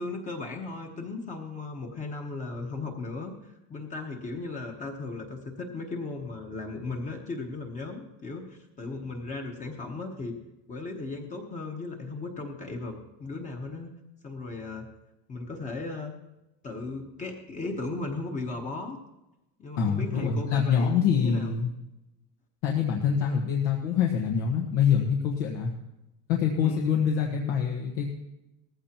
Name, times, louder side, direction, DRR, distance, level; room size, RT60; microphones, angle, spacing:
voice 1, 0.0-10.3 10.7-13.9 14.2-14.9 15.3-16.1 16.6-19.0 19.6-21.5 23.2-23.4 26.6-26.9, left 3 dB, 20° left, 2 dB, 1.1 m, -36 dB
voice 2, 19.8-21.7 22.6-25.7 26.3-28.1, left 7 dB, 75° left, 1 dB, 1.5 m, -25 dB
18.0 x 15.0 x 3.0 m, 0.97 s
cardioid pair, 170°, 35 cm